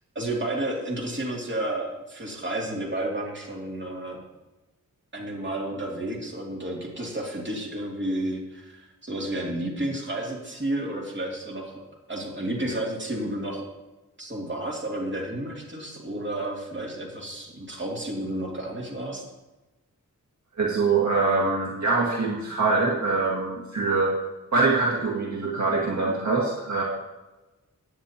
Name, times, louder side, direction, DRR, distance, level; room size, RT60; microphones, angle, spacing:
voice 1, 0.1-4.2 5.1-13.7 14.2-19.2, right 1 dB, 35° right, -2 dB, 2.7 m, -31 dB
voice 2, 20.6-24.2 24.5-26.8, right 3 dB, 60° right, -3 dB, 1.9 m, -24 dB
16.5 x 9.4 x 2.9 m, 1.1 s
wide cardioid pair, 105°, 32 cm